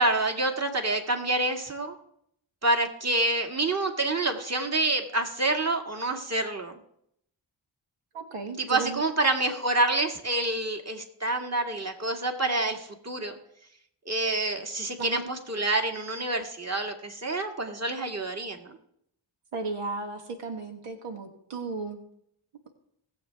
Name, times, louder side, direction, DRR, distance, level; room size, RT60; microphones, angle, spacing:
voice 1, 0.0-1.9 2.6-6.7 8.7-13.4 14.1-18.7, right 2 dB, 30° right, 4 dB, 2.0 m, -27 dB
voice 2, 8.1-9.0 15.0-15.3 19.5-22.0, right 3 dB, 90° right, 4 dB, 1.4 m, -35 dB
18.5 x 7.5 x 3.5 m, 0.72 s
cardioid pair, 45°, 50 cm